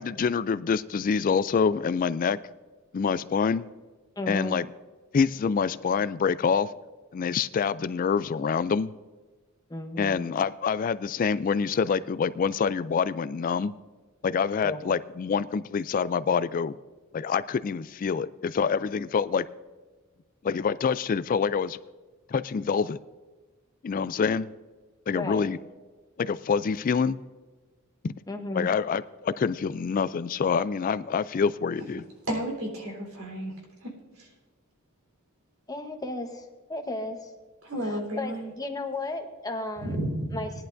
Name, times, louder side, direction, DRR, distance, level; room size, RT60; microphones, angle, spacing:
voice 1, 0.0-2.4 2.9-3.7 4.3-4.7 5.1-6.7 7.1-8.9 10.0-13.7 14.2-16.8 17.1-19.5 20.4-21.8 22.3-23.0 23.8-24.5 25.1-25.6 26.2-27.2 28.0-28.1 28.5-32.0, left 6 dB, 40° left, 15 dB, 0.3 m, -26 dB
voice 2, 4.2-4.6 9.7-10.3 14.6-14.8 25.1-25.5 28.3-28.7 35.7-37.3 37.8-40.0 40.3-40.5, left 2 dB, 15° left, 4 dB, 1.0 m, -34 dB
voice 3, 32.3-33.5 37.6-38.5 39.8-40.4, right 1 dB, 80° right, 0 dB, 3.7 m, -31 dB
19.0 x 11.0 x 2.6 m, 1.3 s
head